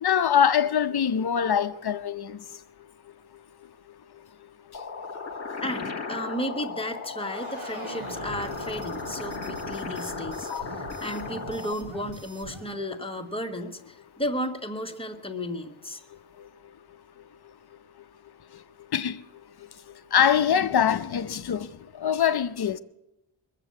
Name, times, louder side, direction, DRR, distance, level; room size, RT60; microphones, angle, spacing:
voice 1, 0.0-2.6 4.7-4.8 10.5-10.6 16.4-16.5 18.5-18.6 18.9-19.2 19.6-22.8, left 8 dB, 50° left, 0.7 m, -24 dB
sound 1, 4.7-11.7, left 4 dB, 35° left, 1.5 m, -36 dB
voice 2, 5.6-16.0, equal, 10° left, 1.2 m, -34 dB
sound 2, 7.2-12.7, right 2 dB, 85° right, 3.9 m, -42 dB
22.5 x 7.5 x 8.1 m
wide cardioid pair, 155°, 48 cm